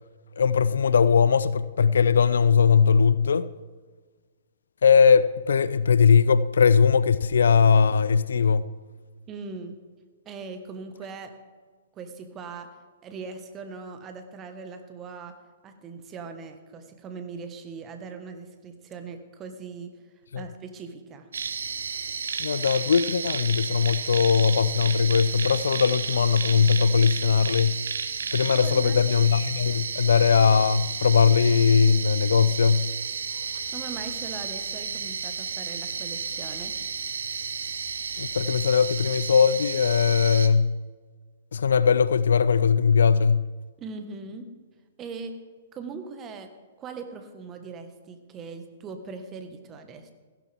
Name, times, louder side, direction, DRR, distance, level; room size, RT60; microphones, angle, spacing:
voice 1, 0.4-3.5 4.8-8.7 20.3-20.4 22.4-27.8 28.3-32.9 38.2-40.7 41.5-43.5, left 6 dB, 65° left, 0.4 m, -20 dB
voice 2, 9.3-9.8 10.2-11.4 11.9-12.8 13.0-15.4 15.6-20.0 20.3-21.3 28.5-29.0 33.7-36.8 43.8-44.5 45.0-45.4 45.7-46.5 46.8-50.1, right 4 dB, 25° right, 1.4 m, -40 dB
sound 1, 21.3-40.5, right 5 dB, 65° right, 0.8 m, -32 dB
15.5 x 11.0 x 3.5 m
figure-of-eight pair, 115°, 0 cm